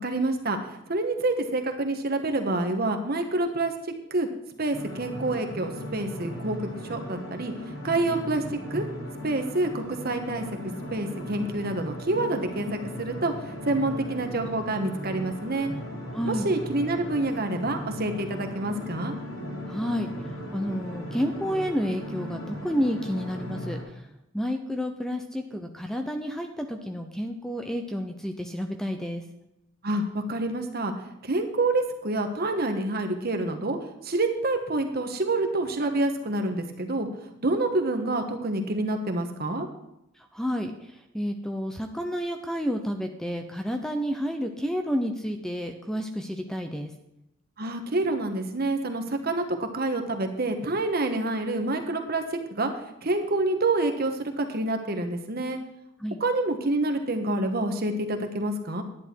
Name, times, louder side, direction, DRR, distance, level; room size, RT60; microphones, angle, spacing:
voice 1, 0.0-0.6 0.9-3.7 4.1-4.3 4.6-6.6 6.9-7.5 7.8-8.4 8.7-8.8 9.2-13.3 13.6-15.7 16.2-19.2 29.8-33.8 34.0-37.1 37.4-39.7 47.6-52.7 53.0-55.6 56.2-58.8, right 2 dB, 50° right, 6 dB, 1.3 m, -27 dB
sound 1, 4.7-23.8, left 1 dB, 75° left, 4.0 m, -37 dB
voice 2, 16.1-16.5 19.7-20.1 20.5-24.1 24.3-29.2 40.3-46.9 56.0-56.2, equal, 5° left, 5 dB, 0.6 m, -30 dB
11.0 x 10.0 x 4.5 m, 0.85 s
head